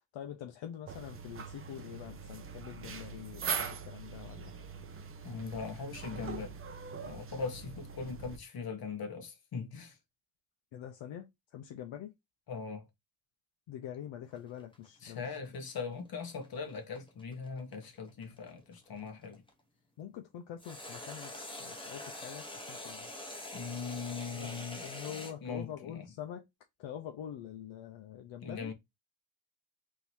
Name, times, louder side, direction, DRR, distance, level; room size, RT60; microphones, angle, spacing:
voice 1, 0.1-4.5 10.7-12.1 13.7-15.2 20.0-23.1 24.3-26.5 26.8-28.7, left 10 dB, 75° left, 0.7 m, -45 dB
sound 1, 0.9-8.4, right 6 dB, 30° right, 0.5 m, -42 dB
voice 2, 5.2-6.6 7.0-10.0 12.5-12.9 15.0-19.4 23.5-26.1 28.4-28.7, left 5 dB, 50° left, 1.2 m, -40 dB
sound 2, 14.3-19.5 20.6-25.3, left 1 dB, 10° left, 0.9 m, -45 dB
3.8 x 2.7 x 4.4 m
cardioid pair, 140°, 46 cm